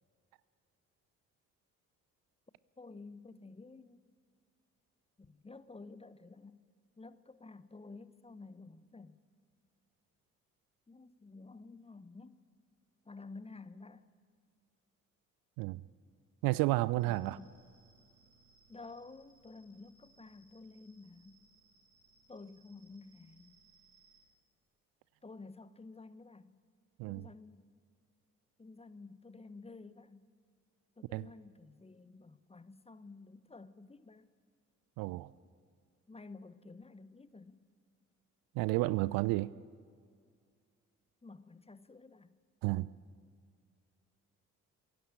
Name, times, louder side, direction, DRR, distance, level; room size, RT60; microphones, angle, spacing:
voice 1, 2.8-4.1 5.2-6.6 7.0-9.2 10.9-12.4 13.0-14.0 17.0-17.5 18.7-21.5 22.3-23.6 25.2-26.6 27.1-27.7 28.6-30.3 31.0-34.3 36.1-37.7 41.2-42.4, left 3 dB, 15° left, 1.0 m, -52 dB
voice 2, 16.4-17.4 27.0-27.2 31.1-31.3 35.0-35.3 38.5-39.5 42.6-42.9, right 19 dB, 60° right, 0.6 m, -31 dB
sound 1, 17.0-24.2, right 4 dB, 85° right, 4.7 m, -67 dB
21.5 x 16.5 x 8.8 m
figure-of-eight pair, 40°, 41 cm